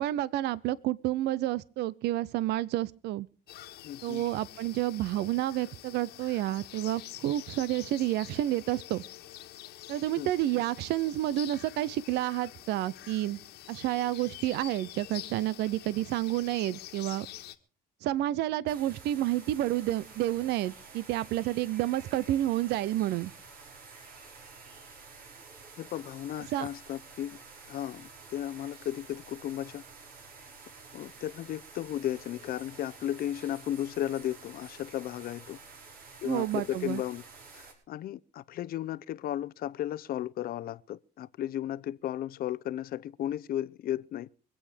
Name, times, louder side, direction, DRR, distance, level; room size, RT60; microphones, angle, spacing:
voice 1, 0.0-3.3 4.0-9.0 9.9-13.4 13.7-17.3 18.0-23.3 26.5-26.7 36.2-37.0, right 14 dB, 80° right, 0.6 m, -30 dB
sound 1, 3.5-17.5, left 14 dB, 80° left, 1.7 m, -47 dB
voice 2, 3.8-4.2 10.1-10.3 25.8-27.4 27.7-29.8 30.9-35.6 36.2-37.2 37.5-44.3, left 12 dB, 60° left, 0.7 m, -35 dB
sound 2, 18.7-37.7, right 4 dB, 60° right, 5.3 m, -50 dB
25.0 x 8.7 x 5.0 m
cardioid pair, 110°, 17 cm